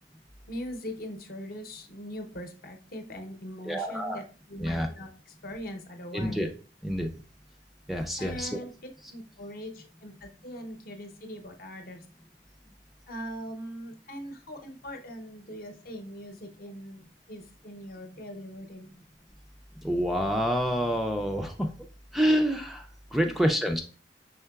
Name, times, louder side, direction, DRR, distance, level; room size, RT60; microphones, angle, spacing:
voice 1, 0.5-6.4 8.2-8.7 9.1-12.0 13.1-17.0 17.3-18.9, equal, 55° left, 5 dB, 0.7 m, -41 dB
voice 2, 3.7-4.2 4.6-4.9 6.1-6.5 6.8-7.1 7.9-8.6 19.8-21.7 22.1-23.8, equal, ahead, 4 dB, 0.3 m, -27 dB
5.5 x 3.7 x 2.3 m, 0.37 s
head